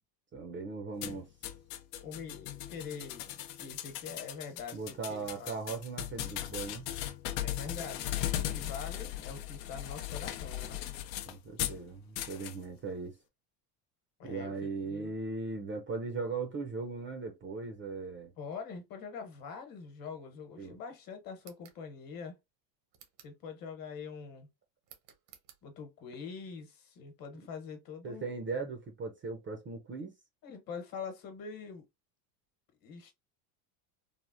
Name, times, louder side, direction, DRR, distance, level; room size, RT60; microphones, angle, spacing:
voice 1, 0.3-1.3 4.7-6.9 11.3-13.2 14.2-18.3 20.6-20.8 28.0-30.1, right 4 dB, 25° right, 0.4 m, -38 dB
sound 1, 1.0-11.8 12.2-12.6, left 12 dB, 75° left, 0.6 m, -38 dB
voice 2, 2.0-5.5 7.4-8.0 8.3-10.8 14.2-15.1 18.4-22.4 23.2-24.5 25.6-28.3 30.4-31.9 32.8-33.1, left 5 dB, 45° left, 1.1 m, -44 dB
sound 2, 21.4-21.8 22.9-23.4 24.8-25.6, right 9 dB, 85° right, 1.0 m, -57 dB
3.4 x 2.0 x 2.5 m
supercardioid pair, 110°, 49 cm